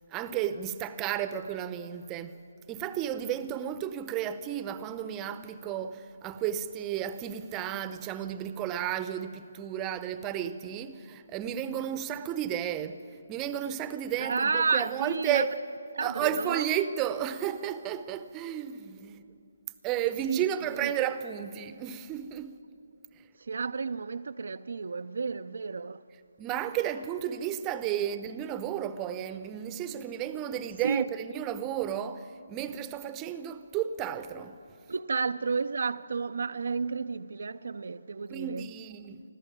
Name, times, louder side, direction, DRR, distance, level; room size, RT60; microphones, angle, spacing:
voice 1, 0.1-2.4 2.7-13.0 13.3-15.5 16.0-19.2 19.8-22.6 26.4-34.6 38.3-39.2, right 10 dB, 20° right, 0.8 m, -33 dB
voice 2, 14.2-15.4 15.9-16.6 20.3-20.4 20.8-20.9 23.4-26.0 30.8-31.1 34.9-38.7, right 4 dB, 65° right, 0.5 m, -31 dB
25.0 x 14.0 x 9.2 m
figure-of-eight pair, 150°, 0 cm